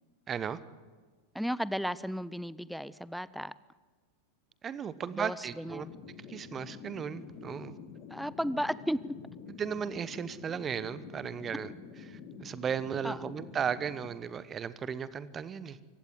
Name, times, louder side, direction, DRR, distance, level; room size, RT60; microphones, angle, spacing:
voice 1, 0.3-0.6 4.6-5.9 6.3-7.8 9.6-11.7 12.1-15.8, right 7 dB, 25° right, 16 dB, 1.0 m, -35 dB
voice 2, 1.3-3.5 5.1-5.9 8.1-9.0 13.0-13.2, equal, ahead, 19 dB, 0.6 m, -34 dB
sound 1, 5.6-14.1, left 6 dB, 40° left, 2.8 m, -48 dB
25.5 x 15.5 x 9.6 m, 1.4 s
figure-of-eight pair, 90°, 0 cm